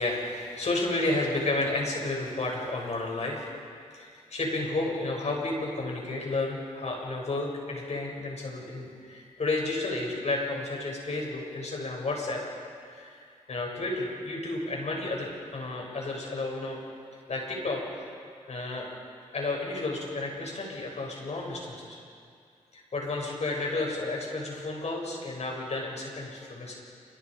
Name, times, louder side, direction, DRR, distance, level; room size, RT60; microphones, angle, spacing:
voice 1, 0.0-3.5 3.9-12.4 12.9-16.8 17.3-18.0 18.5-18.9 19.3-22.0 22.7-26.8, left 2 dB, 55° left, -1 dB, 7.5 m, -32 dB
29.0 x 26.5 x 5.2 m, 2.3 s
cardioid pair, 70°, 14 cm